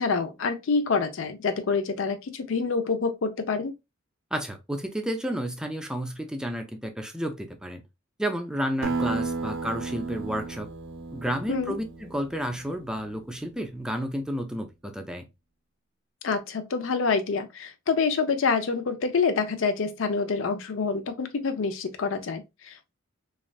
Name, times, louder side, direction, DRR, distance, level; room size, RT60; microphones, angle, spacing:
voice 1, 0.0-3.7 11.5-11.8 16.2-22.9, left 4 dB, 85° left, 0.5 m, -27 dB
voice 2, 4.3-7.8 8.2-10.7 11.1-15.2, equal, 5° right, 0.4 m, -31 dB
Acoustic guitar, 8.8-13.7, right 4 dB, 70° right, 0.5 m, -34 dB
3.2 x 2.4 x 2.4 m
head